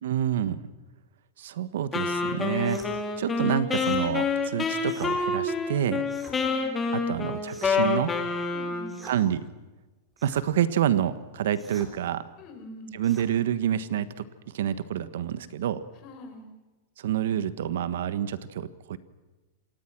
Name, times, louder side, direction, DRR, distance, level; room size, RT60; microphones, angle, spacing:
voice 1, 0.0-0.6 1.4-2.9 3.2-6.0 6.9-8.1 9.0-9.4 10.2-12.2 12.9-15.9 17.0-19.0, right 10 dB, 80° right, 14 dB, 1.4 m, -28 dB
Wind instrument woodwind instrument, 1.9-9.1, left 4 dB, 15° left, 2.6 m, -28 dB
sound 1, 2.6-2.9 3.7-4.0 4.8-5.1 6.0-6.4 7.4-7.9 8.9-9.2 10.2-10.5 11.5-11.9 13.0-13.3, right 1 dB, 10° right, 3.8 m, -48 dB
voice 2, 6.2-6.7 8.5-9.0 12.4-13.0 16.0-16.5, left 1 dB, 35° left, 5 dB, 5.0 m, -43 dB
27.5 x 19.0 x 6.2 m, 1.2 s
supercardioid pair, 160°, 0 cm